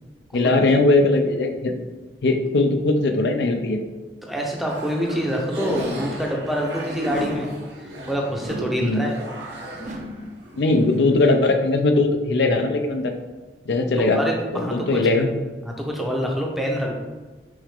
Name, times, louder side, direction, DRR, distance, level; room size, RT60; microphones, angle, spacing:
voice 1, 0.3-1.7 2.2-3.8 8.8-9.1 10.6-13.1 13.7-14.2 14.5-15.3, left 2 dB, 75° left, 5 dB, 0.4 m, -19 dB
voice 2, 4.2-7.5 7.8-9.2 14.0-14.7 15.6-17.0, equal, ahead, -1 dB, 0.6 m, -26 dB
sound 1, 4.7-11.4, equal, 80° right, 1.0 m, -35 dB
sound 2, 5.7-6.2 7.1-7.6 8.4-8.9 9.8-10.3, right 1 dB, 40° right, 0.5 m, -35 dB
6.1 x 2.4 x 3.4 m, 1.3 s
head